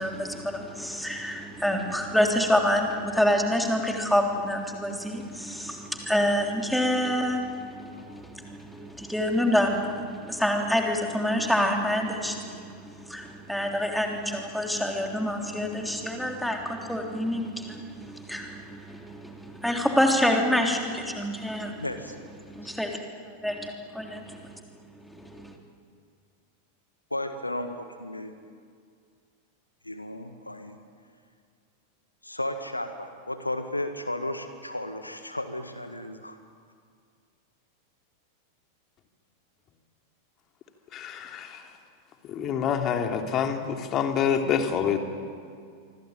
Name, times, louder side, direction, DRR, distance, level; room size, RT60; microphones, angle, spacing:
voice 1, 0.0-21.8 22.4-23.0 23.4-24.5 25.0-25.6, equal, ahead, 2 dB, 3.4 m, -27 dB
voice 2, 21.8-22.2 27.1-28.4 29.8-30.8 32.2-36.4, left 1 dB, 85° left, 8 dB, 1.8 m, -34 dB
voice 3, 40.9-41.6 42.3-45.0, left 7 dB, 30° left, 5 dB, 3.0 m, -27 dB
26.0 x 24.5 x 9.1 m, 2.2 s
figure-of-eight pair, 90°, 0 cm